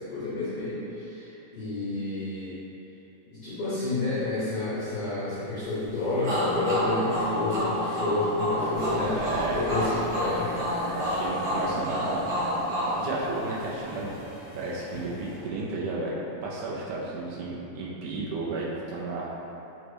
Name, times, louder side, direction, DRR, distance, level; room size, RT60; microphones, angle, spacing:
voice 1, 0.0-2.6 3.3-9.2 9.5-10.5 11.6-11.7, left 2 dB, 80° left, -10 dB, 1.2 m, -30 dB
sound 1, 6.2-13.8, equal, 55° right, 1.2 m, -29 dB
sound 2, 8.7-15.5, left 1 dB, 60° left, 0.6 m, -42 dB
voice 2, 9.1-9.6 10.9-12.2 13.0-14.2 14.5-16.1 16.4-19.3, right 3 dB, 80° right, -5 dB, 1.8 m, -33 dB
5.2 x 2.1 x 4.5 m, 3.0 s
omnidirectional pair, 3.6 m